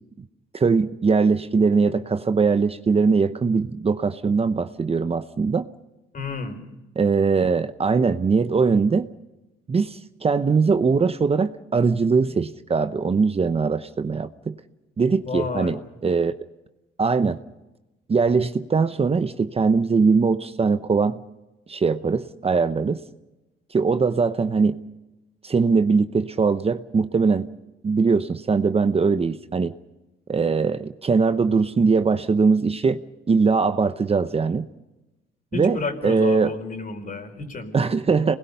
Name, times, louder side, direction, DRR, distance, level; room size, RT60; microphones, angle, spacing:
voice 1, 0.5-5.7 7.0-9.1 9.7-14.6 15.0-16.3 17.0-17.4 18.1-21.2 21.7-23.0 23.7-24.8 25.4-27.5 27.8-29.7 30.3-33.0 33.3-34.7 35.5-35.8 36.0-36.5 37.7-38.4, right 4 dB, 30° right, 10 dB, 0.9 m, -21 dB
voice 2, 6.1-6.6 15.2-15.8 35.5-37.9, left 4 dB, 45° left, 5 dB, 4.9 m, -31 dB
27.5 x 20.5 x 5.6 m, 1.0 s
cardioid pair, 90°, 20 cm